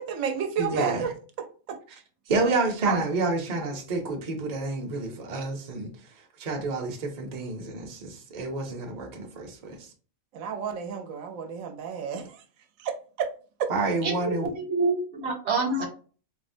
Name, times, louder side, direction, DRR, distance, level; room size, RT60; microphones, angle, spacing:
voice 1, 0.0-1.8 2.9-3.0 10.3-12.4 12.8-13.3 13.6-13.7, right 7 dB, 85° right, 1.0 m, -31 dB
voice 2, 0.6-1.0 2.3-5.9 6.4-9.8 13.7-14.5, right 3 dB, 40° right, 0.6 m, -29 dB
voice 3, 14.0-15.8, right 3 dB, 60° right, 1.1 m, -27 dB
4.0 x 2.0 x 2.6 m
omnidirectional pair, 1.4 m